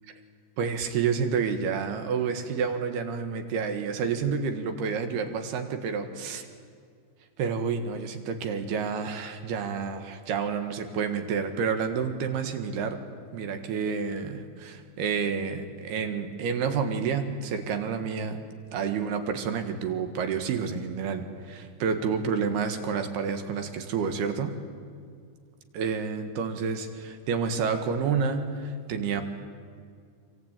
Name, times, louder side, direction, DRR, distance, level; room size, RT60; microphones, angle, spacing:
voice 1, 0.6-6.5 7.4-13.0 13.3-18.4 18.7-24.6 25.7-29.2, right 6 dB, 70° right, 7 dB, 3.4 m, -29 dB
26.5 x 24.5 x 9.1 m, 2.2 s
omnidirectional pair, 5.2 m